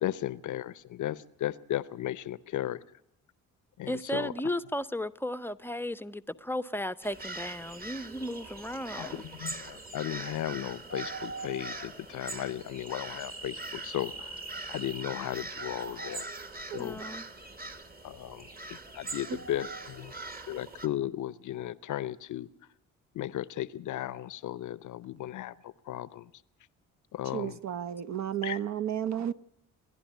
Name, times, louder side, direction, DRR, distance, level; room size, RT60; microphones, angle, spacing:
voice 1, 0.0-2.8 3.8-4.3 8.9-14.4 14.7-16.2 16.7-17.0 18.0-20.1 20.5-22.5 23.1-26.3 27.1-27.6 28.4-28.6, left 13 dB, 50° left, 0.7 m, -35 dB
voice 2, 3.9-9.2 16.8-17.2, left 1 dB, 5° left, 0.7 m, -35 dB
sound 1, 7.0-20.9, right 2 dB, 25° right, 1.5 m, -41 dB
voice 3, 27.3-29.3, right 10 dB, 45° right, 0.8 m, -32 dB
28.5 x 11.5 x 8.2 m
figure-of-eight pair, 40°, 39 cm